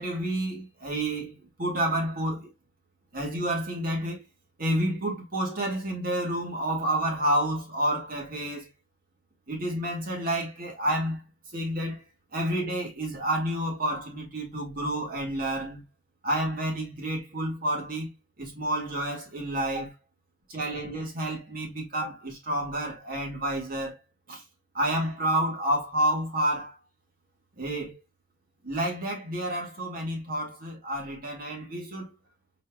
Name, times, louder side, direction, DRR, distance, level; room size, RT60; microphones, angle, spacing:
voice 1, 0.0-2.5 3.1-4.2 4.6-8.7 9.5-11.2 11.5-12.0 12.3-15.8 16.2-19.9 20.5-24.0 24.3-24.4 24.7-26.8 27.6-28.0 28.6-32.1, right 1 dB, 50° right, 2.0 m, -29 dB
4.4 x 4.3 x 2.3 m
head